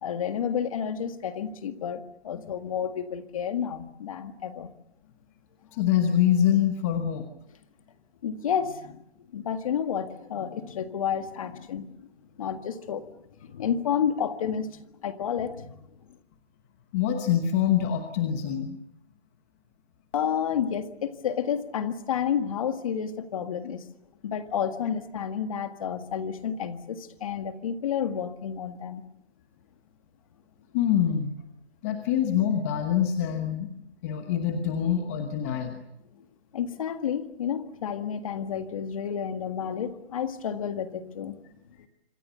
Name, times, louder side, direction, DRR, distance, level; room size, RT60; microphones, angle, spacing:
voice 1, 0.0-4.7 8.2-9.0 9.3-11.9 12.4-13.1 13.5-15.7 20.1-23.8 24.2-29.0 36.5-41.4, left 8 dB, 30° left, 9 dB, 1.8 m, -30 dB
voice 2, 5.7-7.3 16.9-18.8 30.7-31.4 31.8-35.8, left 9 dB, 15° left, 6 dB, 1.1 m, -25 dB
26.5 x 26.5 x 7.0 m, 0.79 s
hypercardioid pair, 165°, 33 cm